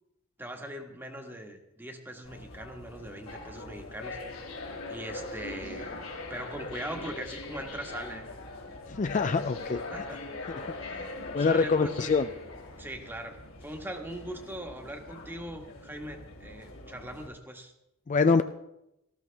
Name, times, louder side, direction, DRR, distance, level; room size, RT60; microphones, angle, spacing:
voice 1, 0.4-4.4 4.9-8.3 9.9-10.3 11.4-12.2 12.8-17.7, right 1 dB, 10° right, 4 dB, 1.4 m, -41 dB
sound 1, 2.2-17.3, left 2 dB, 75° left, 2.9 m, -41 dB
voice 2, 8.9-9.8 10.5-10.6 11.3-12.3 18.1-18.4, left 4 dB, 35° left, 10 dB, 0.4 m, -25 dB
18.5 x 14.0 x 3.4 m, 0.86 s
head